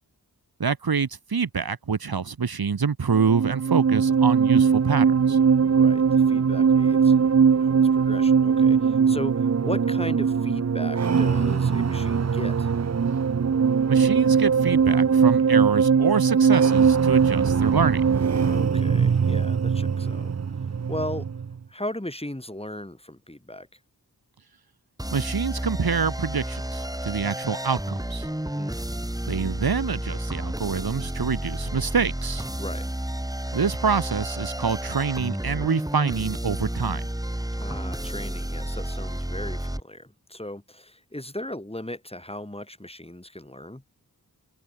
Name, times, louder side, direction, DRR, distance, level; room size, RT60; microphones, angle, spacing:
voice 1, 0.6-5.4 13.9-18.0 25.1-28.3 29.3-32.4 33.5-37.0, right 5 dB, 70° right, 1.3 m, -26 dB
sound 1, 3.1-21.6, right 6 dB, 45° right, 0.6 m, -20 dB
voice 2, 5.6-12.7 18.3-20.3 20.9-21.3 21.7-23.7 28.4-28.8 32.6-32.9 37.6-43.8, left 1 dB, 15° left, 5.7 m, -37 dB
sound 2, 25.0-39.8, right 1 dB, 10° right, 3.1 m, -31 dB
wide cardioid pair, 60°, 38 cm